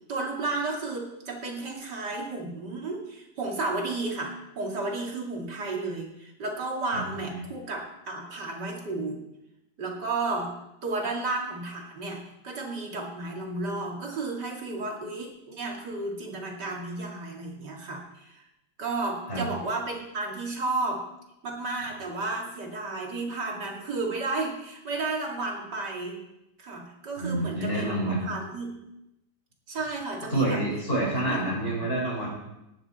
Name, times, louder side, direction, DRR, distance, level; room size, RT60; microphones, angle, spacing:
voice 1, 0.1-9.2 9.8-10.5 10.8-18.5 18.8-21.0 21.4-26.2 26.6-28.8 29.7-30.6 31.1-31.5 31.7-31.8, right 3 dB, 90° right, 0 dB, 2.9 m, -33 dB
voice 2, 27.2-28.2 30.3-32.3, right 1 dB, 35° left, -3 dB, 5.3 m, -28 dB
18.5 x 9.1 x 4.2 m, 0.88 s
omnidirectional pair, 1.8 m